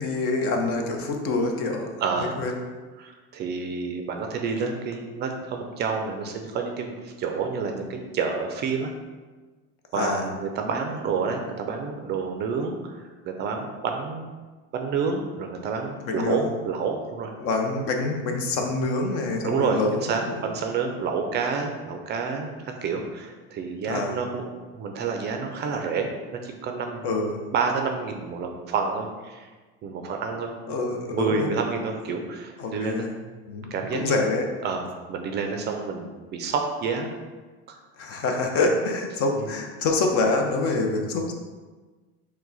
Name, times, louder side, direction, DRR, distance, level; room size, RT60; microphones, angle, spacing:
voice 1, 0.0-1.9 2.4-2.5 9.9-10.2 16.0-16.5 17.4-20.4 23.9-24.2 27.0-27.4 30.7-31.5 32.6-33.1 33.5-34.5 38.0-41.3, left 3 dB, 50° left, 3 dB, 0.7 m, -26 dB
voice 2, 2.0-2.4 3.0-8.9 9.9-14.3 14.7-17.3 19.4-27.1 27.5-29.5 29.8-30.5 31.1-33.1 33.7-34.3 34.6-37.1 37.7-37.8 39.4-39.5, right 5 dB, 35° right, 4 dB, 0.4 m, -29 dB
4.6 x 2.2 x 4.0 m, 1.3 s
supercardioid pair, 135°, 30 cm